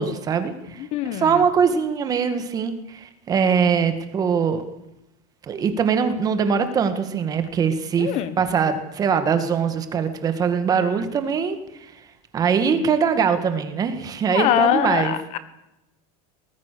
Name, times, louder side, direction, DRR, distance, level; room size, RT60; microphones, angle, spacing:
voice 1, 0.0-4.6 5.5-11.9 12.3-15.1, right 6 dB, 20° right, 9 dB, 1.9 m, -22 dB
voice 2, 0.8-1.4 8.0-8.3 14.3-15.4, left 10 dB, 35° left, 13 dB, 1.3 m, -23 dB
23.5 x 19.5 x 6.9 m, 0.90 s
supercardioid pair, 175°, 19 cm